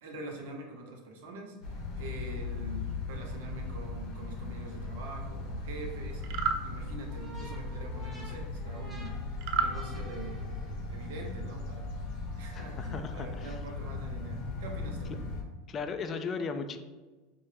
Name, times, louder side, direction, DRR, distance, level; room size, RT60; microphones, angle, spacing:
voice 1, 0.0-9.3 9.6-12.0 12.4-15.1, right 2 dB, 80° right, 1 dB, 0.8 m, -44 dB
sound 1, 1.6-15.4, left 3 dB, 55° left, 0.8 m, -38 dB
sound 2, 6.2-6.6 9.4-9.8, right 6 dB, 60° right, 0.3 m, -29 dB
sound 3, 7.1-11.0, equal, 5° right, 1.0 m, -51 dB
voice 2, 12.5-13.6 15.7-16.8, left 5 dB, 35° left, 8 dB, 0.3 m, -36 dB
4.5 x 2.0 x 3.2 m, 1.2 s
supercardioid pair, 120°, 0 cm